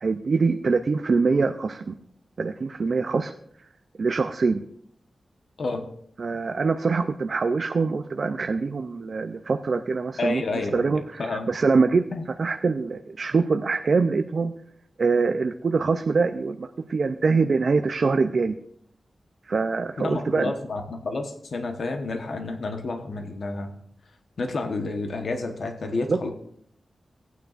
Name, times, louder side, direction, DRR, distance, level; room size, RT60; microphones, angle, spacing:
voice 1, 0.0-1.9 2.4-3.3 4.0-4.6 6.2-10.4 10.7-12.1 12.4-14.5 15.0-18.6 19.5-20.5 26.1-26.2, right 4 dB, 55° right, 7 dB, 0.5 m, -24 dB
voice 2, 10.2-11.5 12.1-12.2 20.0-23.7 24.4-26.3, left 3 dB, 65° left, 4 dB, 1.1 m, -30 dB
17.5 x 9.3 x 2.5 m, 0.68 s
wide cardioid pair, 125°, 0 cm